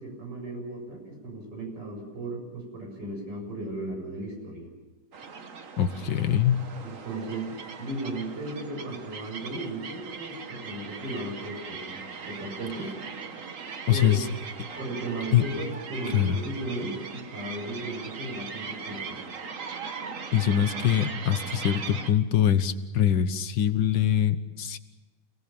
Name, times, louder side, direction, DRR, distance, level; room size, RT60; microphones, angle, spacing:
voice 1, 0.0-4.7 6.8-12.9 13.9-14.2 14.8-19.2, right 1 dB, 85° right, 1 dB, 8.0 m, -36 dB
sound 1, 5.1-22.1, right 5 dB, 50° right, 1.6 m, -39 dB
voice 2, 5.8-6.6 13.9-14.2 15.3-15.4 16.1-16.4 20.3-24.8, left 10 dB, 90° left, 12 dB, 1.8 m, -23 dB
28.5 x 19.0 x 7.1 m, 1.2 s
omnidirectional pair, 1.9 m